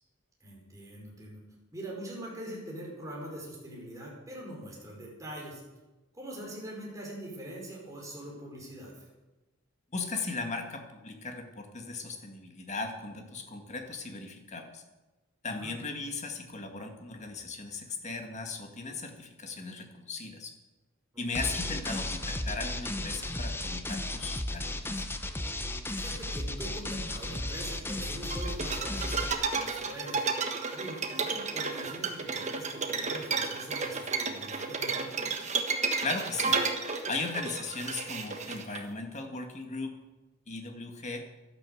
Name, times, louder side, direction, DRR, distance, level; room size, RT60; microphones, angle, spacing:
voice 1, 0.4-1.4 1.7-5.6 6.1-9.1 15.5-15.7 21.1-21.5 25.9-30.3 30.7-35.4, right 1 dB, 15° right, -2 dB, 4.9 m, -43 dB
voice 2, 9.9-14.8 15.4-20.5 21.2-25.1 36.0-36.6 37.1-40.0 40.5-41.3, left 3 dB, 35° left, 4 dB, 2.0 m, -37 dB
sound 1, 21.3-29.3, left 1 dB, 10° left, 0.9 m, -34 dB
sound 2, 28.3-38.8, right 4 dB, 35° right, 1.4 m, -32 dB
12.0 x 11.5 x 7.8 m, 1.1 s
head